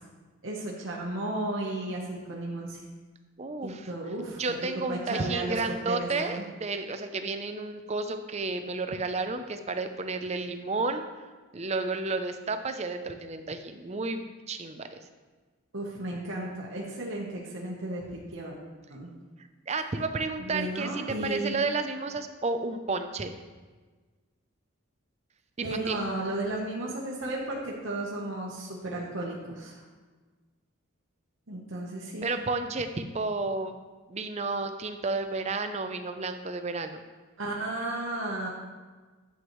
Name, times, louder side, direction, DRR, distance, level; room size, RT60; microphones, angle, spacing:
voice 1, 0.4-2.8 3.6-5.6 5.9-6.4 15.7-18.5 18.9-19.1 20.4-21.6 25.6-29.8 31.5-32.3 37.4-38.5, right 1 dB, 65° right, -2 dB, 1.1 m, -34 dB
voice 2, 3.4-3.9 4.3-11.1 11.5-15.0 19.4-23.3 25.6-26.0 32.2-33.8 34.1-37.0, right 3 dB, 30° right, 8 dB, 0.5 m, -32 dB
10.5 x 8.0 x 3.1 m, 1.4 s
head